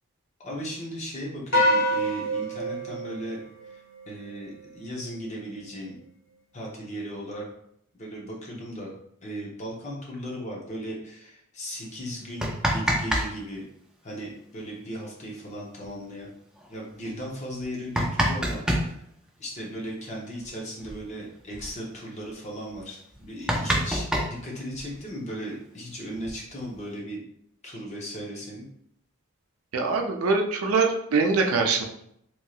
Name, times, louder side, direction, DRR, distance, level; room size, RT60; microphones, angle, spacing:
voice 1, 0.4-3.4 3.6-6.0 6.5-7.4 8.0-8.9 9.2-13.7 14.0-16.3 16.7-19.0 19.4-27.2 27.6-28.7, equal, 35° left, -3 dB, 0.7 m, -37 dB
sound 1, 1.5-4.1, equal, 65° left, 1.3 m, -26 dB
sound 2, 12.2-13.3 13.5-13.6 15.4-15.5 15.8-15.9 16.6-16.7 17.5-18.9 20.4-20.5 20.8-21.0 21.3-21.7 22.2-22.3 22.7-22.8 23.1-25.0 25.9-26.8, equal, 5° right, 0.3 m, -27 dB
voice 2, 29.7-31.8, right 4 dB, 90° right, 3 dB, 0.5 m, -23 dB
3.0 x 2.7 x 2.4 m, 0.72 s
head